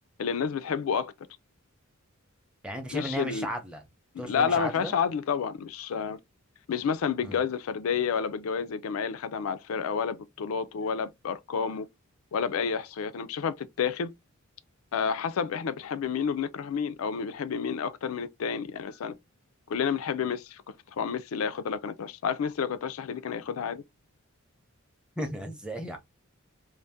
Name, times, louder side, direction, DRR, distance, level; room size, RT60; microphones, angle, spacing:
voice 1, 0.2-1.1 2.9-3.5 4.3-6.2 6.7-11.9 12.3-14.1 14.9-19.2 19.7-20.6 20.9-23.8, left 6 dB, 75° left, 0.4 m, -30 dB
voice 2, 2.6-3.8 4.2-4.9 7.2-7.4 25.2-26.0, equal, 5° right, 0.6 m, -35 dB
2.6 x 2.1 x 3.3 m
head